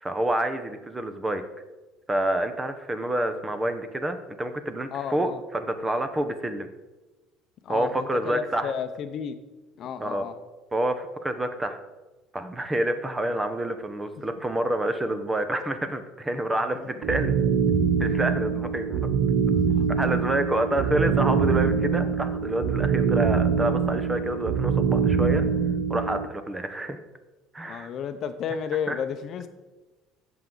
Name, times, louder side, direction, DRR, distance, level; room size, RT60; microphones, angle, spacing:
voice 1, 0.0-1.4 2.1-6.7 7.7-8.7 10.0-10.3 10.7-11.8 12.3-17.3 18.0-19.0 19.7-25.4 25.9-27.0 27.5-27.9 28.9-29.0, right 1 dB, 15° right, 9 dB, 0.9 m, -28 dB
voice 2, 4.9-5.4 7.6-9.4 9.8-10.3 16.7-16.9 19.8-19.9 27.7-29.5, left 7 dB, 50° left, 9 dB, 0.7 m, -32 dB
sound 1, 17.0-26.3, right 6 dB, 50° right, 0.8 m, -24 dB
15.5 x 6.0 x 3.9 m, 1.1 s
cardioid pair, 125°, 0 cm